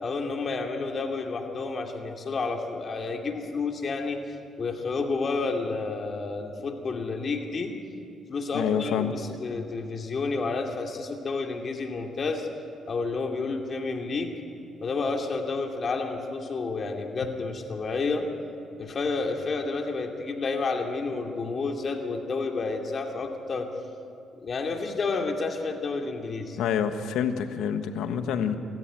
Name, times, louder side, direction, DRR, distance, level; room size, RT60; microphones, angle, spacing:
voice 1, 0.0-7.7 8.3-12.5 12.9-14.3 14.8-18.3 18.8-23.7 24.3-26.6, left 4 dB, 45° left, 3 dB, 2.5 m, -30 dB
voice 2, 8.5-9.1 26.6-28.6, left 8 dB, 85° left, 8 dB, 1.4 m, -27 dB
26.5 x 14.0 x 9.2 m, 2.5 s
cardioid pair, 90°, 0 cm